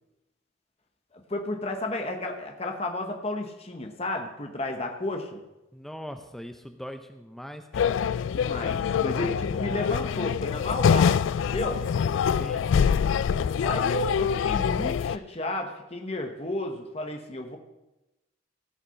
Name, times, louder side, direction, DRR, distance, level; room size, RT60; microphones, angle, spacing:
voice 1, 1.1-5.4 8.3-11.8 13.6-17.6, left 1 dB, 30° left, 3 dB, 1.0 m, -32 dB
voice 2, 5.7-8.0 12.2-13.0, equal, ahead, 6 dB, 0.5 m, -41 dB
sound 1, 7.7-15.2, left 7 dB, 75° left, 0.3 m, -25 dB
16.5 x 5.8 x 5.7 m, 0.98 s
head